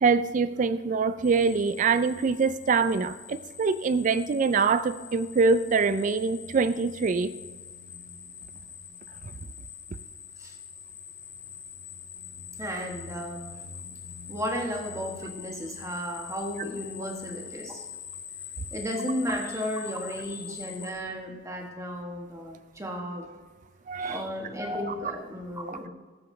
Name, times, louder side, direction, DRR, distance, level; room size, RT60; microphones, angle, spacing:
voice 1, 0.0-7.3 23.9-24.2 25.7-25.8, right 4 dB, 40° right, 14 dB, 0.3 m, -24 dB
sound 1, 1.2-20.9, left 7 dB, 80° left, 1.4 m, -44 dB
voice 2, 12.6-13.5 14.3-17.9 18.7-23.3 24.0-25.9, equal, 15° right, 1 dB, 1.3 m, -34 dB
14.5 x 7.0 x 3.3 m, 1.3 s
head